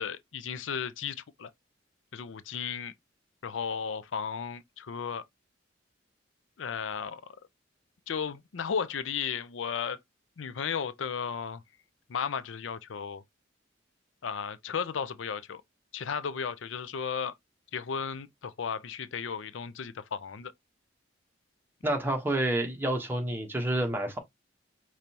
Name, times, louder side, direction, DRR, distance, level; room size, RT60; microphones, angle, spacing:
voice 1, 0.0-1.5 2.1-2.9 3.4-5.2 6.6-7.4 8.1-10.0 10.4-11.6 12.1-13.2 14.2-15.6 15.9-17.3 17.7-20.5, left 6 dB, 85° left, 0.5 m, -34 dB
voice 2, 21.8-24.2, right 1 dB, 10° right, 1.1 m, -29 dB
5.2 x 3.1 x 2.8 m
head